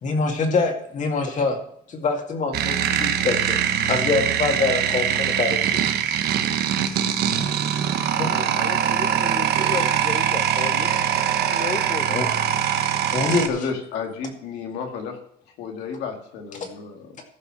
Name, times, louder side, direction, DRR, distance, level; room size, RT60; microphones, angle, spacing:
voice 1, 0.0-1.6 1.9-6.5 8.0-8.8 12.1-12.4 13.1-13.5 16.6-16.7, left 4 dB, 45° left, 2 dB, 2.2 m, -25 dB
sound 1, 2.5-13.5, right 9 dB, 70° right, 1.1 m, -23 dB
voice 2, 8.1-10.9 11.5-12.3, left 5 dB, 25° left, 10 dB, 1.0 m, -33 dB
voice 3, 13.5-15.2 15.6-17.1, left 5 dB, 90° left, 3 dB, 2.0 m, -32 dB
14.0 x 5.6 x 6.1 m, 0.67 s
cardioid pair, 110°, 17 cm